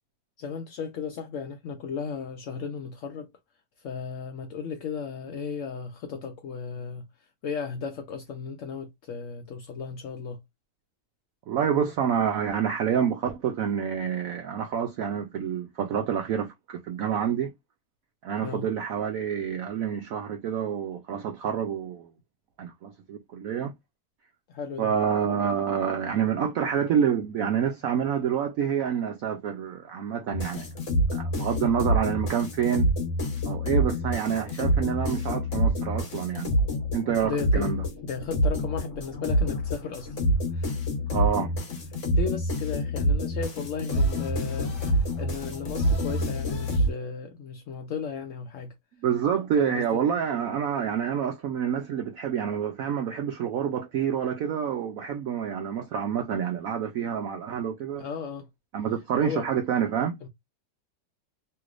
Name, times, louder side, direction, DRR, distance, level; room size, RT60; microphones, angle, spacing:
voice 1, 0.4-3.3 3.8-7.0 7.4-10.4 18.4-18.7 24.5-24.9 37.2-40.2 40.5-40.8 42.1-48.7 49.6-49.8 58.0-58.5 59.2-59.4 60.2-60.3, left 6 dB, 70° left, 0.7 m, -35 dB
voice 2, 11.5-17.5 18.2-22.1 22.6-23.7 24.8-30.7 31.1-32.9 33.4-36.5 36.9-37.8 41.1-41.5 49.0-58.0 58.7-60.2, right 8 dB, 75° right, 0.8 m, -28 dB
sound 1, 30.3-46.9, equal, 50° left, 1.2 m, -27 dB
3.1 x 3.0 x 2.4 m
omnidirectional pair, 1.9 m